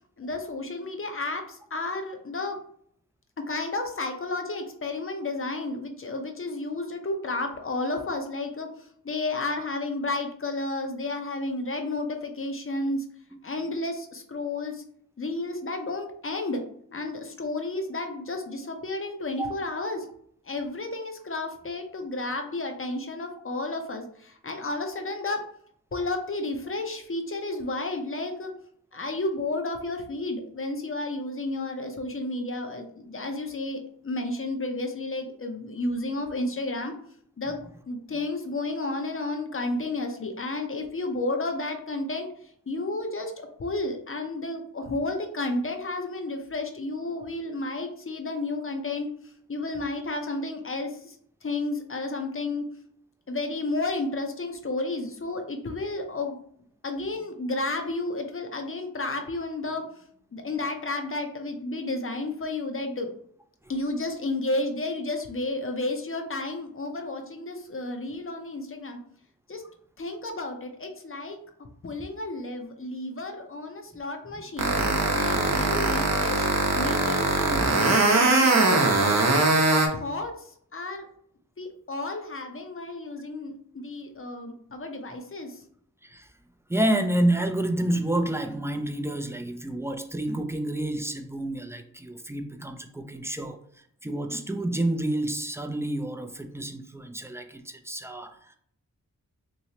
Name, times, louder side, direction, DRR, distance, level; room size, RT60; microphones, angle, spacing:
voice 1, 0.2-2.6 3.4-13.1 13.4-14.8 15.2-16.6 16.9-20.1 20.4-25.5 25.9-28.5 28.9-36.9 37.4-42.3 42.7-51.2 51.4-52.6 53.3-56.4 56.8-59.9 60.3-63.2 63.7-69.0 69.5-69.6 70.0-71.4 71.8-74.7 75.1-76.5 76.8-78.6 79.0-79.6 79.9-81.1 81.6-85.6, left 2 dB, 40° left, 0.7 m, -32 dB
sound 1, 74.6-79.9, right 3 dB, 50° right, 0.8 m, -21 dB
voice 2, 86.7-93.6 94.0-98.6, right 1 dB, 10° right, 0.4 m, -29 dB
3.1 x 3.0 x 2.8 m
cardioid pair, 60°, 34 cm